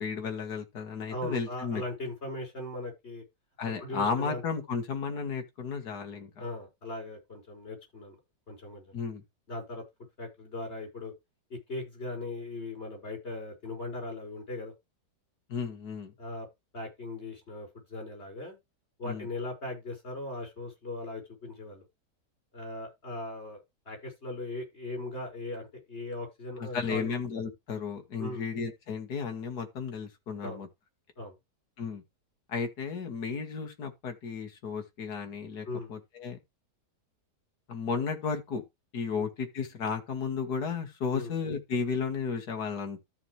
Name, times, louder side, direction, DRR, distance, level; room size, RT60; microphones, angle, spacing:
voice 1, 0.0-1.8 3.6-6.3 8.9-9.2 15.5-16.1 19.0-19.3 26.6-30.7 31.8-32.0 32.5-36.4 37.7-38.6 38.9-43.0, left 5 dB, 65° left, 2.4 m, -33 dB
voice 2, 1.1-3.2 3.8-4.4 6.4-8.2 8.5-8.8 9.5-9.8 10.2-11.1 11.5-14.7 16.2-16.5 16.7-18.6 19.0-21.9 22.5-27.1 28.2-28.5 30.4-30.6 31.2-31.3 35.7-35.9 39.2-39.3 41.1-41.4, left 2 dB, 35° left, 5.9 m, -39 dB
13.5 x 6.0 x 3.2 m
omnidirectional pair, 1.8 m